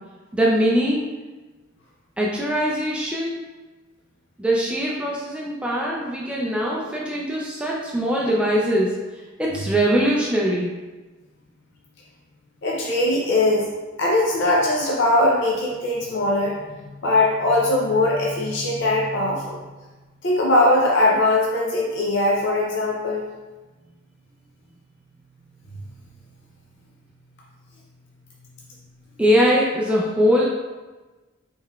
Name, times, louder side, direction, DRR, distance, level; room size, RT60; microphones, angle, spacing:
voice 1, 0.3-1.0 2.2-3.4 4.4-9.0 9.4-10.7 29.2-30.5, equal, 5° right, -4 dB, 0.4 m, -21 dB
voice 2, 12.6-13.7 14.0-16.5 16.8-19.6 20.2-23.3, left 2 dB, 60° left, -4 dB, 0.6 m, -20 dB
4.2 x 3.8 x 2.3 m, 1.2 s
head